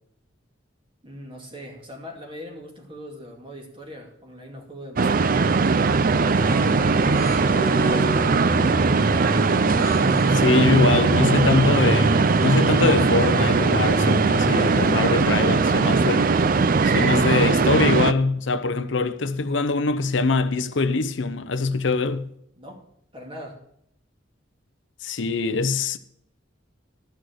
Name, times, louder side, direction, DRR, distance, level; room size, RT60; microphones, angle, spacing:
voice 1, 1.0-5.4 6.5-8.1 14.6-15.1 22.6-22.9 23.1-23.6, equal, 25° right, 2.4 m, -41 dB
sound 1, 5.0-18.1, right 4 dB, 45° right, 0.5 m, -20 dB
sound 2, 6.3-15.2, equal, 10° left, 1.9 m, -29 dB
voice 2, 10.3-16.3 16.8-22.3 25.0-26.0, left 3 dB, 70° left, 0.7 m, -23 dB
13.0 x 6.3 x 6.4 m
head